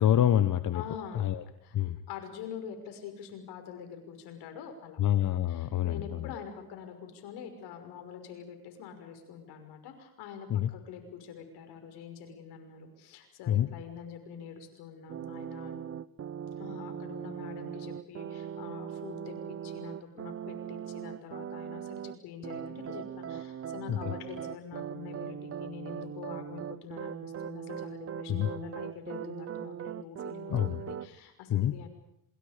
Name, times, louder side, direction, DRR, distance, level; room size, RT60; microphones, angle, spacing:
voice 1, 0.0-0.8 1.1-1.4 1.7-2.0 5.0-6.3 10.5-10.7 13.5-13.7 23.9-24.0 28.3-28.5 30.5-30.8 31.5-31.7, left 11 dB, 50° left, 11 dB, 1.3 m, -26 dB
voice 2, 0.7-1.2 1.6-1.8 2.1-5.0 5.5-10.5 10.7-15.8 16.6-31.9, left 7 dB, 75° left, 6 dB, 5.9 m, -45 dB
sound 1, 15.1-22.2 22.4-31.1, right 8 dB, 35° right, 0.8 m, -40 dB
27.0 x 27.0 x 5.2 m, 0.81 s
supercardioid pair, 80°, 40 cm